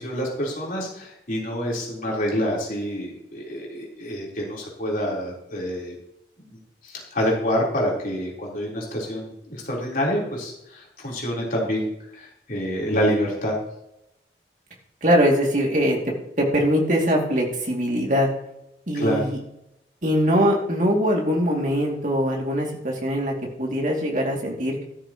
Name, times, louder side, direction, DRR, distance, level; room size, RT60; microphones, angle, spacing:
voice 1, 0.0-5.9 6.8-13.5 18.9-19.2, equal, 50° left, -4 dB, 4.0 m, -27 dB
voice 2, 15.0-18.3 18.9-19.4 20.0-24.8, equal, 45° right, -1 dB, 2.6 m, -22 dB
13.5 x 13.0 x 3.1 m, 0.82 s
head